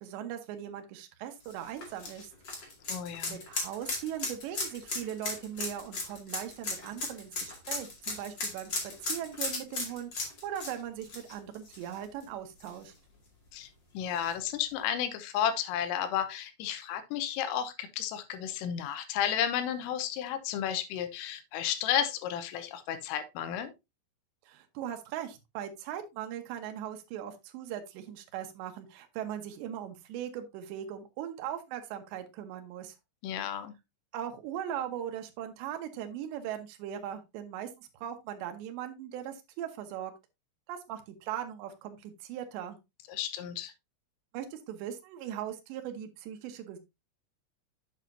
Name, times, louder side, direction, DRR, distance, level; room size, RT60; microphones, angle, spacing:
voice 1, 0.0-2.3 3.3-12.9 24.5-32.9 34.1-40.1 40.7-42.8 44.3-46.8, right 10 dB, 70° right, 6 dB, 3.0 m, -39 dB
sound 1, 1.4-12.2 12.6-12.7 14.2-14.3, left 3 dB, 45° left, 1.4 m, -36 dB
voice 2, 2.9-3.4 13.5-13.7 14.0-23.7 33.2-33.7 43.1-43.7, left 9 dB, 85° left, 10 dB, 3.5 m, -32 dB
8.4 x 7.4 x 2.7 m, 0.23 s
omnidirectional pair, 5.9 m